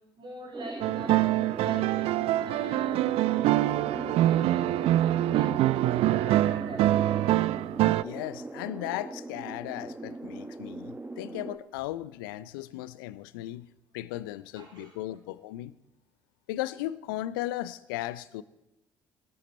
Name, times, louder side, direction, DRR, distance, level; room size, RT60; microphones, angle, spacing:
voice 1, 0.2-1.2 1.6-7.2 14.6-15.0, right 2 dB, 45° right, -1 dB, 5.2 m, -44 dB
sound 1, 0.5-11.6, right 2 dB, 15° right, 1.2 m, -40 dB
sound 2, 0.8-8.0, right 14 dB, 60° right, 0.4 m, -25 dB
voice 2, 8.0-13.7 13.9-15.7 16.5-18.4, left 15 dB, 75° left, 18 dB, 0.6 m, -36 dB
18.5 x 13.5 x 4.3 m, 0.91 s
hypercardioid pair, 50°, 11 cm